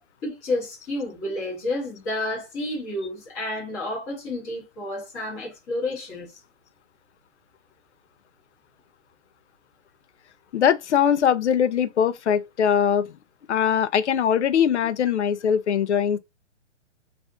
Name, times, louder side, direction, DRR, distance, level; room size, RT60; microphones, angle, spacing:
voice 1, 0.2-6.3, left 2 dB, 10° left, 0.7 m, -30 dB
voice 2, 10.5-13.1 13.5-16.2, left 8 dB, 65° left, 0.5 m, -21 dB
2.5 x 2.4 x 3.4 m
hypercardioid pair, 160°, 37 cm